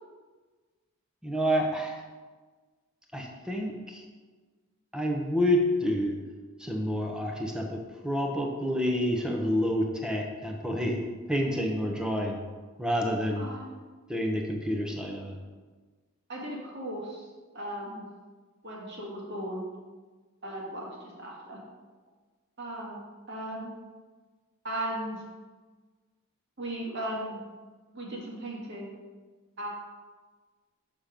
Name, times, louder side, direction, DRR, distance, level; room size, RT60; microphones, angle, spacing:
voice 1, 1.2-2.0 3.1-4.0 4.9-6.1 6.6-11.0 11.3-12.4 12.8-13.5 14.1-15.4, equal, 5° right, 1 dB, 0.9 m, -28 dB
voice 2, 13.4-13.8 16.3-17.3 17.5-18.1 18.6-19.7 20.4-21.6 22.6-23.0 23.3-23.7 24.6-25.2 26.6-27.4 27.9-28.9 29.6-29.7, right 1 dB, 55° right, -4 dB, 2.1 m, -36 dB
6.7 x 5.8 x 5.2 m, 1.4 s
head